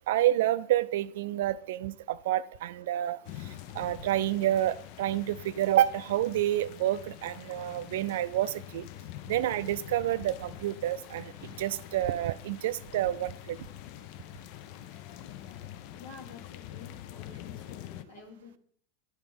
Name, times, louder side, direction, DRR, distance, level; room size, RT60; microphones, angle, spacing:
voice 1, 0.1-3.2 3.4-8.9 9.3-13.6, right 13 dB, 60° right, 16 dB, 0.3 m, -29 dB
sound 1, 3.2-18.0, left 13 dB, 50° left, 0.3 m, -45 dB
voice 2, 16.0-18.6, left 5 dB, 75° left, -2 dB, 1.9 m, -49 dB
11.0 x 4.2 x 3.4 m, 0.62 s
figure-of-eight pair, 85°, 0 cm